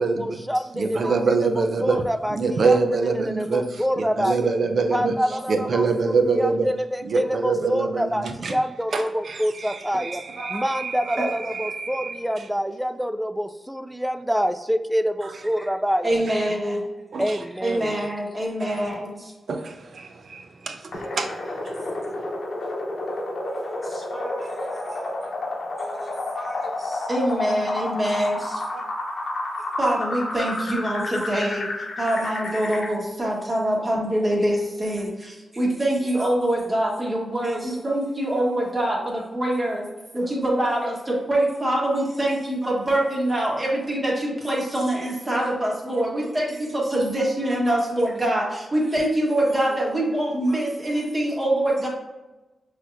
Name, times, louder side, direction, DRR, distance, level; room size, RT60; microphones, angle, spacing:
voice 1, 0.0-4.5 4.9-10.2 10.5-16.2 16.5-16.6 17.2-18.1, equal, 5° right, 9 dB, 0.3 m, -27 dB
voice 2, 0.7-2.0 2.3-5.1 5.5-6.7 7.0-8.6 8.9-12.2 15.2-15.3 16.1-16.3 17.1-17.4 17.6-17.9 18.7-18.9 19.5-21.3 21.6-21.8, right 4 dB, 65° right, 5 dB, 0.5 m, -25 dB
voice 3, 16.0-16.8 17.6-19.3 23.8-25.1 25.8-28.8 29.8-31.7 32.0-39.9 40.1-51.9, right 1 dB, 20° right, -2 dB, 1.4 m, -25 dB
sound 1, 20.9-32.9, left 2 dB, 70° left, 0.8 m, -30 dB
5.6 x 3.1 x 2.6 m, 1.1 s
cardioid pair, 80°, 0 cm